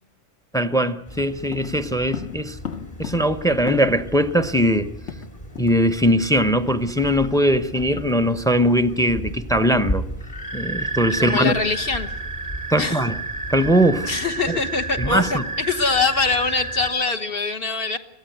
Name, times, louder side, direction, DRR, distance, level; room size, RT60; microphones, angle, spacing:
voice 1, 0.5-2.6 3.0-4.9 5.6-10.0 10.5-11.5 12.7-13.2 13.5-14.1 14.5-14.6 15.0-15.4, equal, 5° left, 0.6 m, -20 dB
sound 1, 1.1-16.9, right 2 dB, 30° left, 2.6 m, -32 dB
sound 2, 1.5-4.2 4.4-4.5 4.8-5.8 6.1-6.3 6.7-6.9, left 8 dB, 70° left, 1.4 m, -36 dB
voice 2, 11.1-12.1 12.8-13.0 14.0-15.4 15.7-18.0, left 4 dB, 50° left, 1.5 m, -23 dB
22.0 x 15.0 x 9.2 m
omnidirectional pair, 1.3 m